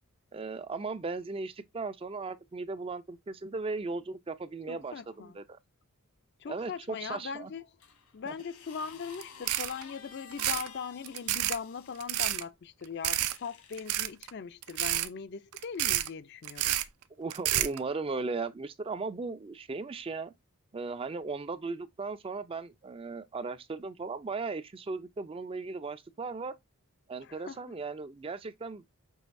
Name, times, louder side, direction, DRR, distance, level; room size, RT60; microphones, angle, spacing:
voice 1, 0.3-5.6 6.5-7.5 8.3-8.4 17.2-20.3 20.7-26.6 27.1-28.8, right 3 dB, 25° right, 0.3 m, -37 dB
voice 2, 4.7-5.4 6.4-7.6 8.1-16.7 27.2-27.8, left 6 dB, 50° left, 0.4 m, -40 dB
sound 1, 7.8-12.1 12.9-14.0 14.9-15.1, left 6 dB, 75° left, 1.3 m, -52 dB
sound 2, 9.1-9.2 9.5-9.8 10.3-10.7 11.0-11.6 12.0-12.4 13.0-13.4 13.7-14.3 14.6-15.1 15.5-16.1 16.4-16.8 17.3-17.8, right 13 dB, 85° right, 0.5 m, -29 dB
6.2 x 3.2 x 2.5 m
head